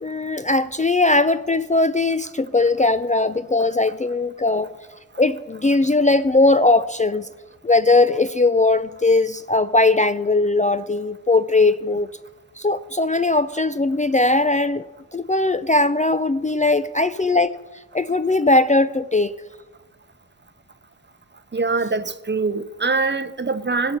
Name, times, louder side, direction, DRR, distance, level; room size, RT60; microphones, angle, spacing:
voice 1, 0.0-4.7 5.2-7.3 7.6-12.1 12.6-14.8 15.1-17.5 17.9-19.3, left 2 dB, 20° left, 0.4 m, -19 dB
voice 2, 21.5-24.0, right 3 dB, 30° right, 0.6 m, -23 dB
17.0 x 6.6 x 5.9 m
wide cardioid pair, 55°, 36 cm